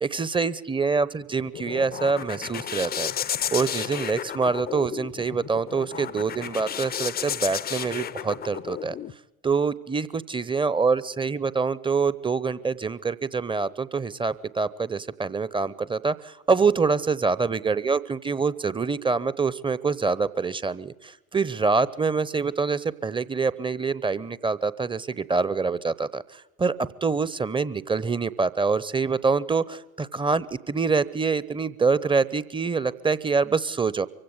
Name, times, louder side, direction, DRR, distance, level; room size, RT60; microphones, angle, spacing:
voice 1, 0.0-3.1 3.5-8.9 9.4-34.1, right 4 dB, 10° right, 19 dB, 0.8 m, -25 dB
sound 1, 1.2-9.1, left 9 dB, 20° left, 0.6 m, -33 dB
24.5 x 16.5 x 8.2 m, 1.0 s
figure-of-eight pair, 75°, 43 cm